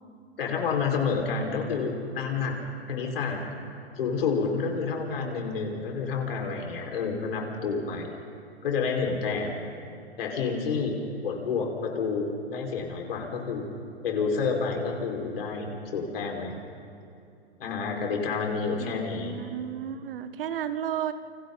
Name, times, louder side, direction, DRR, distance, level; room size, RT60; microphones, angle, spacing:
voice 1, 0.4-2.6 2.9-3.5 4.0-8.1 8.6-9.5 10.2-11.0 11.2-13.7 14.0-16.5 17.6-19.4, left 5 dB, 60° left, 1 dB, 5.3 m, -29 dB
voice 2, 18.8-21.1, right 10 dB, 55° right, 10 dB, 1.4 m, -33 dB
29.0 x 27.0 x 4.1 m, 2.6 s
figure-of-eight pair, 115°, 32 cm